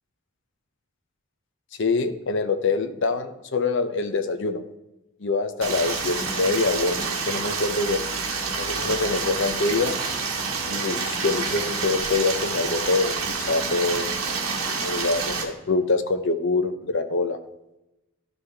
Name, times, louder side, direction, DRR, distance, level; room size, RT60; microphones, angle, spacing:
voice 1, 1.8-4.6 5.2-8.0 8.6-9.9 10.7-13.1 13.5-14.1 14.8-17.4, left 3 dB, 55° left, 9 dB, 0.6 m, -25 dB
Stream, 5.6-15.4, right 4 dB, 70° right, 1.3 m, -28 dB
11.5 x 5.5 x 3.4 m, 0.96 s
head